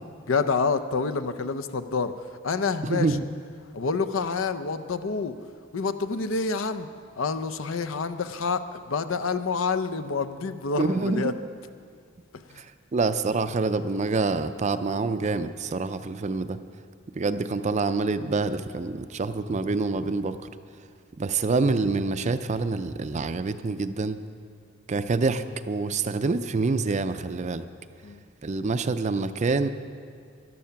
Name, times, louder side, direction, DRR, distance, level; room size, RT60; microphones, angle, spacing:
voice 1, 0.3-2.1 2.4-3.2 3.7-5.3 5.7-6.9 7.2-8.6 8.9-11.3 12.5-12.6 28.0-28.2, left 4 dB, 70° left, 10 dB, 0.6 m, -27 dB
voice 2, 2.8-3.2 10.8-11.3 12.6-16.6 17.1-20.4 21.2-24.2 24.9-27.7 28.4-29.7, right 3 dB, 35° right, 11 dB, 0.4 m, -26 dB
14.0 x 11.5 x 5.8 m, 2.1 s
head